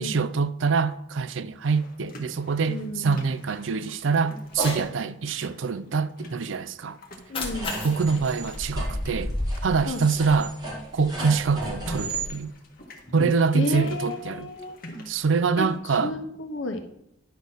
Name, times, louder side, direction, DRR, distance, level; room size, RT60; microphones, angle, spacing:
voice 1, 0.0-7.0 7.8-9.3 9.6-10.5 10.9-12.6 13.1-14.5 15.1-16.1, right 5 dB, 80° right, 0.5 m, -25 dB
sound 1, 1.6-15.8, equal, 50° left, 1.6 m, -44 dB
voice 2, 2.7-3.2 7.3-7.8 9.9-10.0 11.2-11.3 13.5-14.8 15.6-16.8, left 2 dB, 75° left, 1.1 m, -32 dB
Cat, 4.5-4.9 7.1-9.5, left 2 dB, 30° left, 1.6 m, -35 dB
sound 2, 7.4-12.3, right 1 dB, 20° right, 1.9 m, -32 dB
10.5 x 4.0 x 6.3 m
head